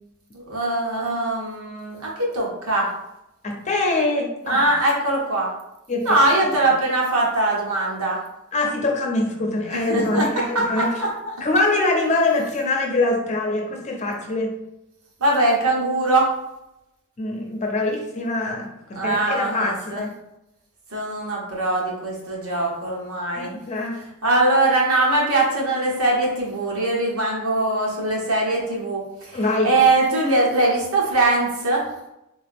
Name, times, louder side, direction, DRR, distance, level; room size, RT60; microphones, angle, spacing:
voice 1, 0.5-2.9 4.5-5.5 6.0-8.2 9.9-10.2 10.5-11.1 15.2-16.3 18.9-20.0 20.9-23.5 24.2-29.4 29.6-31.8, right 2 dB, 90° right, -3 dB, 1.2 m, -21 dB
voice 2, 3.4-4.6 5.9-6.5 8.5-10.9 11.4-14.5 17.2-20.1 23.4-24.0 29.3-29.7, left 2 dB, 35° left, 1 dB, 0.7 m, -24 dB
3.5 x 2.9 x 3.5 m, 0.88 s
head